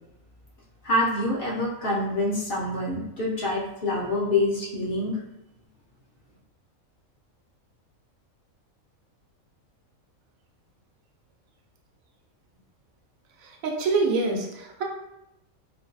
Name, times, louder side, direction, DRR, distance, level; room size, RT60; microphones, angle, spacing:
voice 1, 0.8-5.2, left 1 dB, 50° left, -5 dB, 0.8 m, -26 dB
voice 2, 13.6-14.8, right 3 dB, 80° right, 1 dB, 1.0 m, -25 dB
4.4 x 2.3 x 2.5 m, 0.85 s
omnidirectional pair, 1.5 m